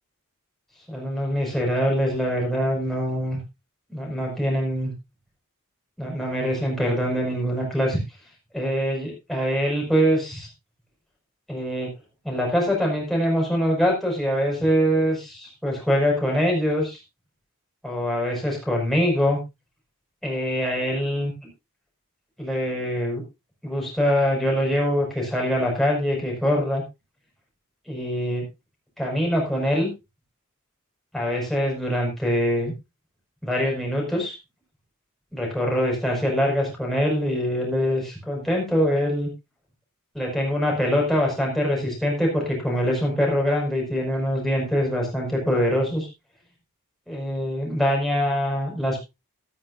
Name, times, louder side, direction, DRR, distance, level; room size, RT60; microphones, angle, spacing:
voice 1, 0.9-3.4 3.9-4.9 6.0-8.0 8.5-10.5 11.5-11.9 12.2-17.0 17.8-19.4 20.2-21.3 22.4-23.2 23.6-26.8 27.9-28.4 29.0-29.9 31.1-32.7 33.4-34.4 35.3-39.3 40.1-46.1 47.1-49.0, equal, ahead, -2 dB, 5.6 m, -24 dB
13.5 x 13.5 x 2.6 m, 0.23 s
head